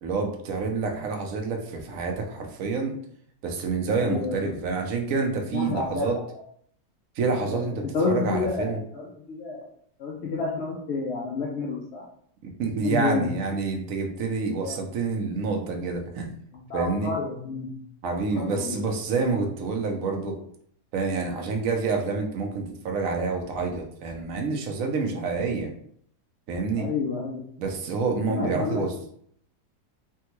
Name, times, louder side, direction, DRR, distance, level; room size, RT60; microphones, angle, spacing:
voice 1, 0.0-3.0 3.4-6.2 7.2-8.8 12.4-16.3 16.7-17.1 18.0-20.4 20.9-25.7 26.5-26.9 27.6-28.9, right 4 dB, 65° right, 3 dB, 0.9 m, -28 dB
voice 2, 4.0-4.5 5.5-6.2 7.5-9.7 10.0-12.0 12.8-13.3 14.5-14.8 16.5-18.8 26.8-27.5 28.3-28.9, left 4 dB, 70° left, -3 dB, 0.6 m, -30 dB
3.4 x 2.2 x 2.9 m, 0.65 s
omnidirectional pair, 1.7 m